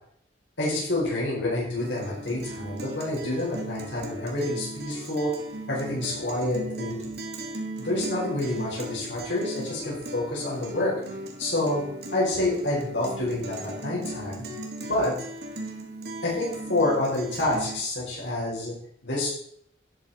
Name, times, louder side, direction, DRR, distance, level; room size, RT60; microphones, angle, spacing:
voice 1, 0.6-5.3 5.7-7.0 7.8-10.9 11.4-11.8 12.1-14.4 14.9-15.1 16.2-18.7 19.0-19.3, left 1 dB, 75° left, -6 dB, 5.0 m, -28 dB
Guitar, 1.8-17.8, right 1 dB, 65° right, 2.0 m, -38 dB
12.0 x 8.3 x 4.4 m, 0.66 s
head